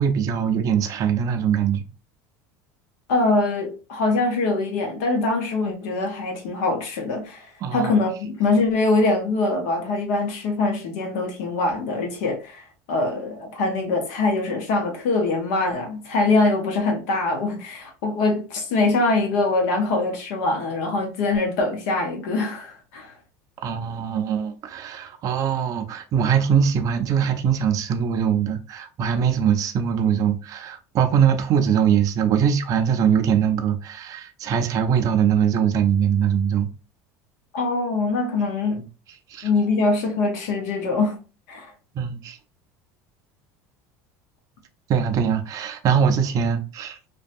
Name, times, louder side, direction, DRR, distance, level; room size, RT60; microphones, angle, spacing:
voice 1, 0.0-1.8 7.6-7.9 23.6-36.7 39.3-39.5 41.9-42.4 44.9-47.0, right 8 dB, 45° right, 0.4 m, -22 dB
voice 2, 3.1-12.6 12.9-23.1 37.5-38.8 39.4-41.2 41.5-41.7, left 3 dB, 80° left, 0.8 m, -23 dB
2.6 x 2.2 x 2.5 m
supercardioid pair, 105°, 8 cm